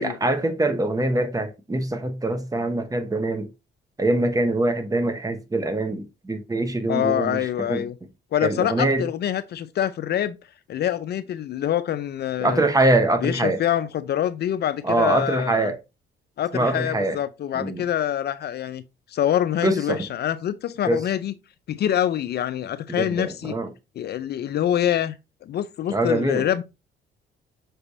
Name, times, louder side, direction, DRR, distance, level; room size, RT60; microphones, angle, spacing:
voice 1, 0.0-3.5 4.0-7.9 8.4-9.0 12.4-13.6 14.8-15.8 16.5-17.2 17.5-17.8 19.6-20.0 20.8-21.0 22.9-23.7 25.9-26.5, right 2 dB, 15° right, 0.8 m, -24 dB
voice 2, 6.9-7.9 8.3-10.4 10.7-12.7 13.2-15.7 16.4-18.8 19.1-21.3 21.7-23.6 24.0-25.1 25.4-26.6, left 11 dB, 55° left, 0.4 m, -25 dB
5.8 x 3.3 x 2.7 m
cardioid pair, 90°, 20 cm